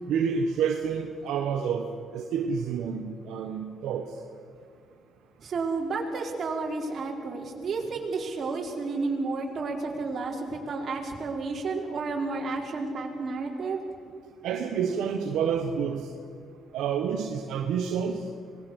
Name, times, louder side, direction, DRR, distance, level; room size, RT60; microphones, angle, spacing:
voice 1, 0.1-4.1 14.4-16.1 16.7-18.2, right 7 dB, 85° right, 3 dB, 1.4 m, -29 dB
voice 2, 5.4-13.8, right 3 dB, 50° right, 0 dB, 4.6 m, -31 dB
26.0 x 20.0 x 6.5 m, 2.2 s
cardioid pair, 90°, 0 cm